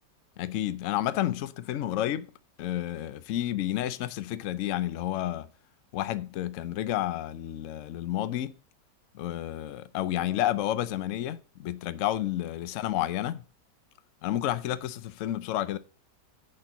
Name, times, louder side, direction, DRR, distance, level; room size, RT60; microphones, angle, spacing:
voice 1, 0.4-2.3 2.6-5.5 5.9-8.5 9.1-13.4 14.2-15.8, left 13 dB, 65° left, 0.8 m, -30 dB
10.5 x 4.4 x 5.4 m
omnidirectional pair, 1.9 m